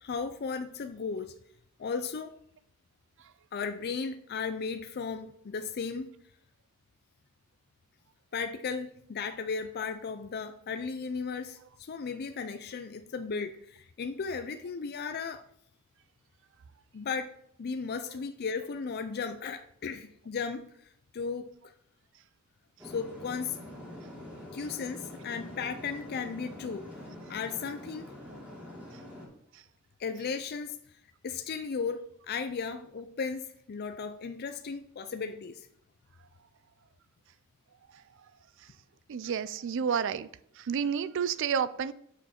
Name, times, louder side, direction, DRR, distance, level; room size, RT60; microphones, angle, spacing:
voice 1, 0.0-1.3 1.8-2.3 3.5-6.1 8.3-15.4 16.9-17.3 17.6-20.6 21.1-21.5 22.8-23.6 24.5-26.9 27.3-28.1 30.0-30.8 31.2-35.7, left 5 dB, 50° left, 8 dB, 0.4 m, -35 dB
sound 1, 22.8-29.3, left 1 dB, 5° right, 2.5 m, -45 dB
voice 2, 39.1-40.3 40.6-41.9, right 7 dB, 60° right, 16 dB, 0.4 m, -30 dB
7.0 x 6.2 x 4.3 m, 0.68 s
head